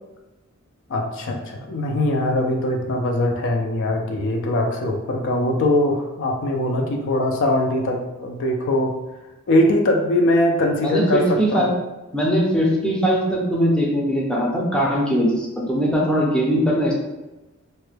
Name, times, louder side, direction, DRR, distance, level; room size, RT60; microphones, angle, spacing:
voice 1, 0.9-8.9 9.5-11.7, left 1 dB, 60° left, 2 dB, 0.4 m, -21 dB
voice 2, 10.8-11.7 12.1-16.9, equal, 5° left, -4 dB, 0.5 m, -20 dB
3.0 x 2.2 x 3.1 m, 1.0 s
head